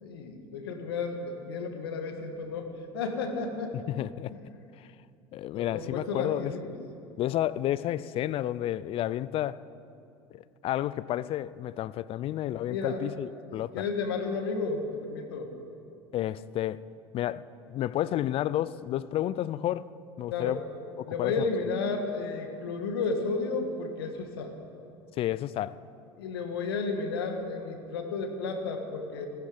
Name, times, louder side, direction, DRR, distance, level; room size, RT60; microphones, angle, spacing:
voice 1, 0.0-3.8 4.3-4.4 5.5-6.8 12.7-13.0 13.7-15.5 20.3-20.6 21.1-24.5 26.2-29.3, left 4 dB, 80° left, 5 dB, 1.6 m, -32 dB
voice 2, 3.9-4.3 5.3-6.5 7.2-9.6 10.3-13.8 16.1-16.8 17.1-17.4 17.7-19.9 20.2-20.6 21.0-21.5 25.2-25.8, left 13 dB, 50° left, 18 dB, 0.5 m, -31 dB
15.0 x 14.5 x 5.1 m, 2.6 s
hypercardioid pair, 75°, 13 cm